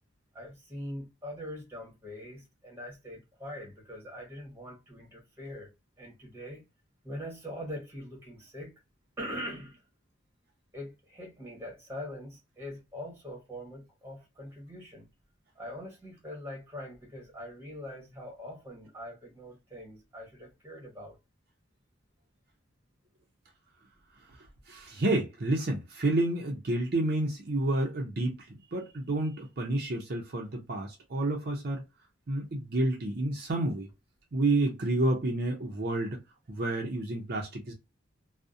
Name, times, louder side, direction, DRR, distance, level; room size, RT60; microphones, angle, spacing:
voice 1, 0.3-5.7 6.0-6.6 7.0-8.7 9.2-9.8 10.7-15.1 15.5-21.2, equal, 10° right, 1.0 m, -42 dB
voice 2, 24.7-31.8 32.3-33.9 34.3-36.2 36.5-37.7, right 2 dB, 50° right, 0.5 m, -29 dB
2.6 x 2.0 x 2.4 m
head